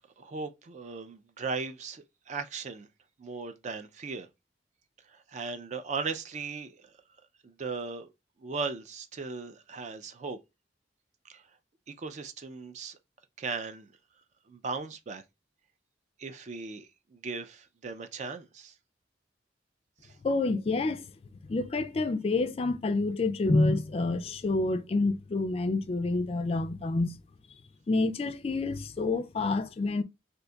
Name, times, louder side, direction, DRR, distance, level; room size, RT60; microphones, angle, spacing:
voice 1, 0.2-2.9 3.2-4.3 5.1-6.9 7.4-8.1 8.4-10.4 11.3-11.4 11.9-13.0 13.4-13.9 14.5-15.2 16.2-18.7 20.0-20.1, right 4 dB, 40° right, 0.4 m, -37 dB
voice 2, 20.2-21.1 21.5-27.2 27.9-30.0, left 3 dB, 35° left, 0.3 m, -28 dB
2.6 x 2.2 x 3.7 m
head